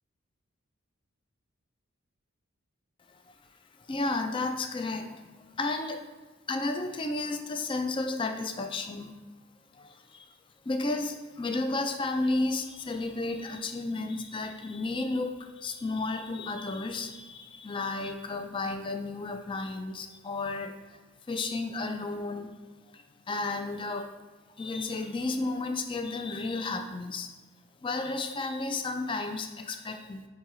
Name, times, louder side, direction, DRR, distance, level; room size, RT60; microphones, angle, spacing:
voice 1, 3.9-5.1 5.6-6.0 6.5-9.1 9.8-10.3 10.7-20.8 21.3-22.5 23.3-24.1 24.6-27.3 27.8-30.3, left 3 dB, 25° left, 5 dB, 0.4 m, -32 dB
8.3 x 3.7 x 3.1 m, 1.3 s
head